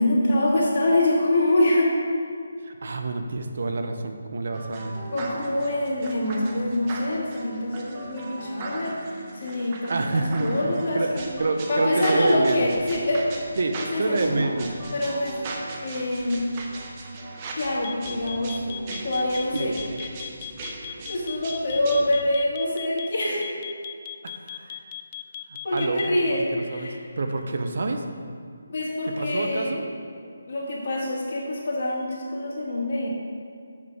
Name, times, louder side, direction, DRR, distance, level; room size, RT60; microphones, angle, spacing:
voice 1, 0.0-1.9 5.1-11.3 11.7-13.4 13.9-14.5 14.9-15.4 15.8-16.5 17.5-18.6 19.0-19.8 21.1-23.5 25.6-27.0 28.7-29.8 30.1-33.1, left 1 dB, 50° left, -4 dB, 2.1 m, -25 dB
voice 2, 2.6-5.0 9.9-11.1 11.4-12.7 13.6-14.7 19.5-20.0 24.2-24.9 25.5-28.0 29.1-29.8, right 3 dB, 60° right, 5 dB, 0.7 m, -28 dB
sound 1, 4.5-22.2, right 3 dB, 30° right, 0.8 m, -38 dB
sound 2, 17.8-26.2, left 11 dB, 30° left, 0.4 m, -37 dB
7.4 x 6.1 x 4.9 m, 2.3 s
figure-of-eight pair, 155°, 0 cm